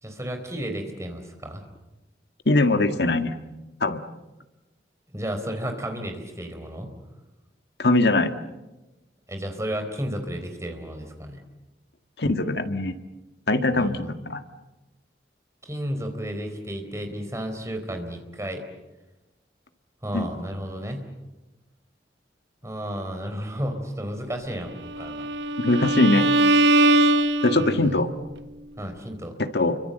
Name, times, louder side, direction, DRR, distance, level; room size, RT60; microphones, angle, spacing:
voice 1, 0.0-1.6 5.1-6.9 9.3-11.4 13.7-14.1 15.6-18.6 20.0-21.1 22.6-25.3 27.5-28.0 28.8-29.4, equal, 15° right, 5 dB, 4.1 m, -33 dB
voice 2, 2.4-3.3 3.8-4.0 7.8-8.3 12.2-13.0 13.5-14.4 20.1-20.3 25.6-26.4 27.4-28.1 29.5-29.8, left 2 dB, 70° left, 8 dB, 1.7 m, -21 dB
Bowed string instrument, 24.9-28.0, right 2 dB, 75° right, 1.0 m, -21 dB
29.5 x 24.5 x 8.0 m, 1.0 s
head